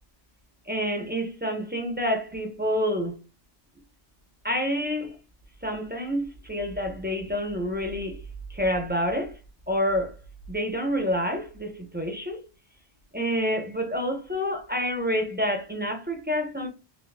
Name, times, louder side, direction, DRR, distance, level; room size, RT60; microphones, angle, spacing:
voice 1, 0.7-3.2 4.4-5.1 5.6-8.2 8.5-9.3 9.7-10.2 10.5-12.4 13.1-16.7, equal, 10° right, 0.7 m, -28 dB
4.4 x 3.1 x 2.2 m
omnidirectional pair, 1.2 m